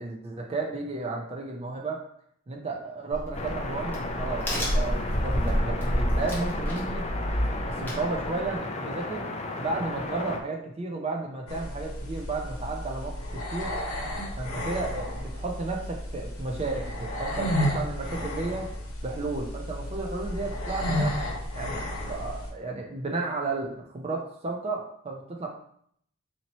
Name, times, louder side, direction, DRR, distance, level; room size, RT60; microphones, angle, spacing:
voice 1, 0.0-2.0 2.5-7.0 7.7-9.2 9.6-13.7 14.4-18.7 19.0-21.2 21.5-25.5, right 3 dB, 30° right, 1 dB, 0.5 m, -33 dB
Crack, 3.1-8.6, equal, 10° left, 0.8 m, -29 dB
sound 1, 3.3-10.4, left 2 dB, 30° left, 0.3 m, -34 dB
sound 2, 11.5-22.5, equal, 75° left, 0.9 m, -32 dB
4.2 x 2.8 x 3.0 m, 0.66 s
head